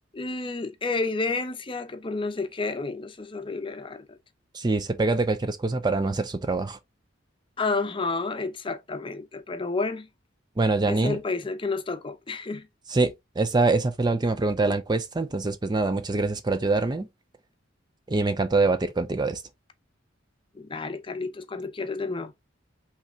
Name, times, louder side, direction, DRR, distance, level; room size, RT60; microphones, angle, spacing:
voice 1, 0.1-4.0 7.6-10.1 10.9-12.7 20.6-22.3, left 3 dB, 25° left, 0.6 m, -30 dB
voice 2, 4.5-6.8 10.6-11.2 12.9-17.1 18.1-19.4, right 3 dB, 20° right, 0.4 m, -24 dB
5.7 x 3.3 x 2.7 m
head